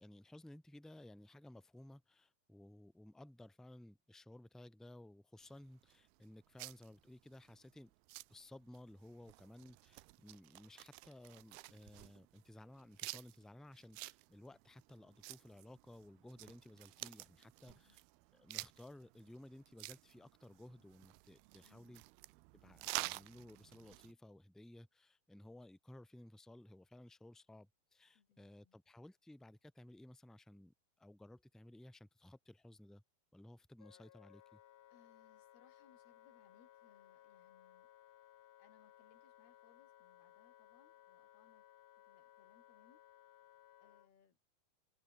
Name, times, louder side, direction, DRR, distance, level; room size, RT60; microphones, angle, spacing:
voice 1, 0.0-7.9 8.3-18.0 18.3-22.0 22.6-33.0 33.3-34.6, left 1 dB, ahead, 3.5 m, -57 dB
sound 1, 5.4-24.1, right 22 dB, 90° right, 2.6 m, -51 dB
voice 2, 17.6-18.0 21.6-22.1 22.6-23.0 28.2-29.1 34.9-37.9 38.6-41.6 42.0-43.0 43.8-44.4, left 7 dB, 85° left, 5.6 m, -71 dB
Wind instrument woodwind instrument, 33.8-44.1, left 12 dB, 65° left, 2.5 m, -63 dB
omnidirectional pair, 4.4 m